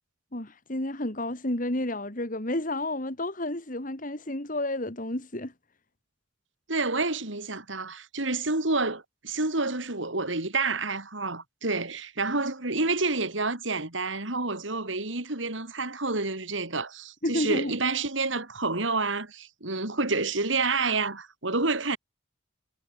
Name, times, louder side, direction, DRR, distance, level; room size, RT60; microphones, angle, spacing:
voice 1, 0.3-5.5 17.2-17.7, left 1 dB, 40° left, 2.7 m, -31 dB
voice 2, 6.7-22.0, right 3 dB, 70° right, 3.7 m, -29 dB
head